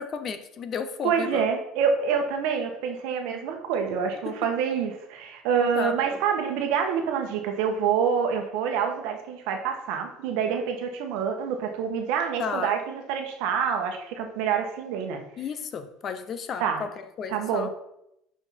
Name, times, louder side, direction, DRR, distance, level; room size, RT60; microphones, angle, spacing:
voice 1, 0.0-1.5 5.8-6.0 12.4-12.8 15.4-17.7, left 6 dB, 30° left, 11 dB, 0.6 m, -33 dB
voice 2, 1.0-15.2 16.6-16.8 17.3-17.7, right 7 dB, 65° right, 4 dB, 1.3 m, -27 dB
5.7 x 5.4 x 5.7 m, 0.80 s
cardioid pair, 165°, 0 cm